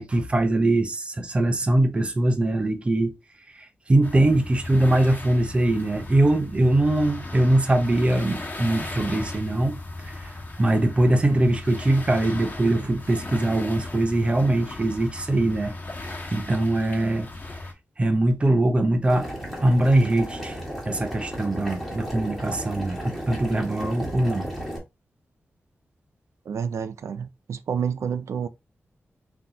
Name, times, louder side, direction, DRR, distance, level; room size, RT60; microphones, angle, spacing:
voice 1, 0.0-3.1 3.9-9.8 10.1-10.3 10.6-15.7 16.3-17.3 18.0-19.3 19.6-20.6 20.9-24.5, right 1 dB, 25° right, 0.6 m, -22 dB
sound 1, 4.0-17.7, left 2 dB, 40° left, 1.3 m, -37 dB
Boiling, 19.1-24.8, equal, 5° left, 1.5 m, -34 dB
voice 2, 26.5-28.5, right 7 dB, 90° right, 0.4 m, -29 dB
3.8 x 2.9 x 3.9 m
wide cardioid pair, 180°, 5 cm